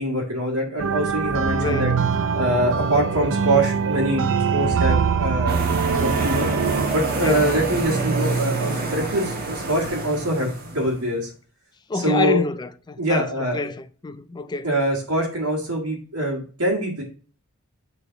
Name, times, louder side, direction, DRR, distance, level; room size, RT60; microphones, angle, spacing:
voice 1, 0.0-1.9 2.3-4.2 4.5-6.5 6.9-11.3 12.0-12.4 13.0-13.7 14.6-17.0, right 1 dB, 80° right, 1.7 m, -24 dB
sound 1, 0.8-6.9, right 6 dB, 60° right, 0.4 m, -23 dB
voice 2, 1.6-1.9 7.2-7.5 11.9-13.3 13.5-14.7, left 3 dB, 20° left, 0.4 m, -27 dB
sound 2, 5.5-11.0, right 3 dB, 45° right, 1.2 m, -26 dB
6.3 x 3.4 x 4.5 m
head